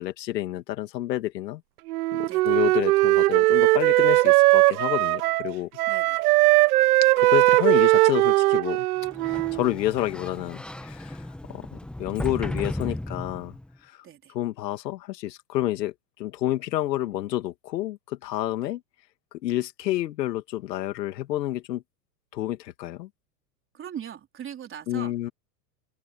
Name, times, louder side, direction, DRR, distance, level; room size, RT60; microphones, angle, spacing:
voice 1, 0.0-1.6 2.1-5.7 7.2-8.9 9.2-13.5 13.9-14.0 14.3-15.9 16.2-18.8 19.4-21.8 22.3-23.1 24.9-25.3, left 14 dB, 75° left, 2.4 m, -29 dB
Wind instrument woodwind instrument, 1.9-5.5 5.8-9.7, right 20 dB, 60° right, 0.6 m, -20 dB
voice 2, 2.2-2.6 5.9-6.2 7.2-7.3 14.0-14.3 18.6-18.7 23.7-25.1, right 9 dB, 25° right, 4.2 m, -40 dB
Sliding door, 9.0-13.7, left 1 dB, ahead, 1.1 m, -35 dB
hypercardioid pair, 130°, 50 cm